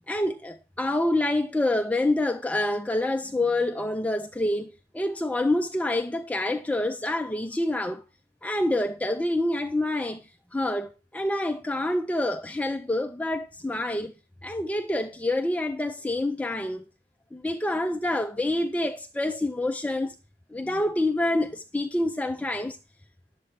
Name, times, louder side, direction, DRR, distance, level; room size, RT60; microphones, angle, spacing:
voice 1, 0.1-4.7 4.9-8.0 8.4-10.2 10.5-14.1 14.4-16.8 17.3-20.1 20.5-22.8, left 1 dB, 10° left, 0.4 m, -27 dB
11.5 x 7.6 x 4.5 m
head